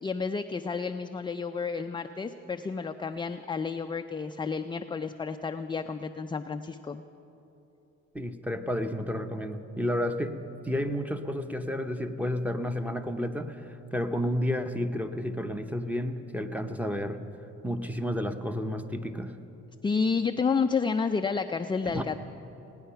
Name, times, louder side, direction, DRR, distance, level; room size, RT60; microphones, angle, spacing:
voice 1, 0.0-7.0 19.8-22.2, left 5 dB, 15° left, 7 dB, 0.3 m, -30 dB
voice 2, 8.1-10.4 10.6-17.2 17.6-19.3 21.8-22.0, equal, 5° right, 8 dB, 0.8 m, -31 dB
17.5 x 9.7 x 5.7 m, 3.0 s
cardioid pair, 90°, 30 cm